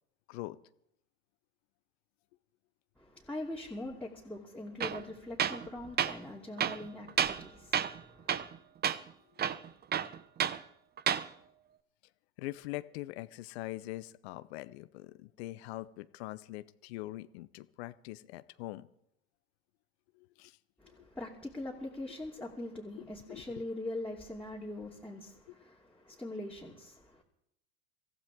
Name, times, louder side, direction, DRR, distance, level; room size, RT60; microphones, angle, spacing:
voice 1, 3.0-8.5 20.8-27.2, left 1 dB, 5° left, 2.7 m, -42 dB
Tools, 4.8-5.0 5.4-5.7 6.0-6.2 6.6-7.5 7.7-8.0 8.3-8.6 8.8-9.0 9.4-10.6 11.0-11.3, right 9 dB, 30° right, 0.8 m, -31 dB
voice 2, 12.4-18.9 20.2-20.6 20.8-21.0 22.9-23.7, left 18 dB, 65° left, 0.8 m, -43 dB
24.0 x 15.0 x 3.7 m
hypercardioid pair, 85°, 34 cm